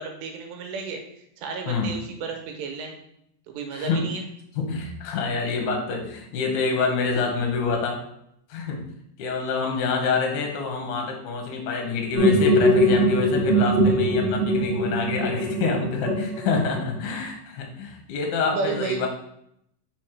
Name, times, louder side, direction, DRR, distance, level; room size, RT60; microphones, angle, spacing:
voice 1, 0.0-2.9 3.5-4.3 18.5-19.1, right 4 dB, 85° right, 3 dB, 3.1 m, -32 dB
voice 2, 3.7-4.0 4.6-8.0 8.5-8.8 9.2-19.1, left 4 dB, 75° left, 2 dB, 1.8 m, -27 dB
sound 1, 12.1-16.9, equal, 50° right, 2.2 m, -21 dB
6.2 x 3.9 x 4.7 m, 0.74 s
omnidirectional pair, 5.0 m